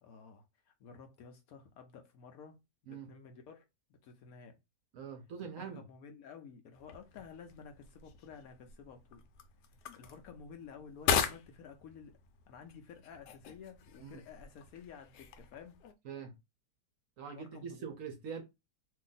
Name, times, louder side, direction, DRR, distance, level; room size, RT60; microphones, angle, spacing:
voice 1, 0.0-2.6 2.8-3.6 3.9-4.6 5.6-9.2 10.0-12.2 12.5-15.8 17.3-17.9, left 6 dB, 70° left, 0.9 m, -52 dB
voice 2, 4.9-5.8 14.0-14.2 16.0-16.3 17.2-18.4, right 6 dB, 65° right, 0.9 m, -43 dB
sound 1, 6.7-15.9, left 7 dB, 85° left, 1.2 m, -40 dB
2.7 x 2.5 x 3.8 m
omnidirectional pair, 1.8 m